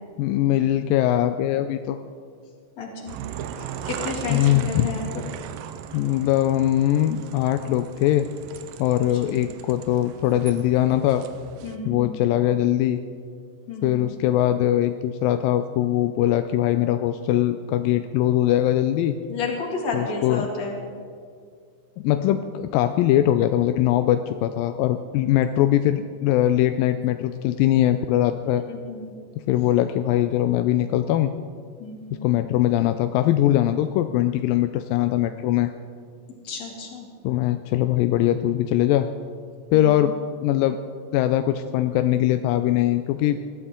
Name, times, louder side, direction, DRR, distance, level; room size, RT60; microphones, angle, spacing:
voice 1, 0.2-2.0 4.3-4.9 5.9-8.3 8.8-11.2 11.9-13.0 13.8-19.1 19.9-20.5 22.0-28.6 29.5-31.3 32.1-35.7 37.2-39.1 39.7-40.1 40.4-40.8 41.1-43.4, left 13 dB, 85° left, 9 dB, 2.3 m, -21 dB
voice 2, 2.8-3.2 3.9-5.2 9.2-9.4 11.6-12.3 13.7-14.1 19.3-20.8 28.7-29.1 31.8-32.3 36.4-37.1 39.7-40.0, left 3 dB, 55° left, -1 dB, 3.3 m, -32 dB
sound 1, 3.1-11.8, right 8 dB, 85° right, 2.4 m, -37 dB
20.5 x 13.0 x 3.7 m, 2.1 s
omnidirectional pair, 4.0 m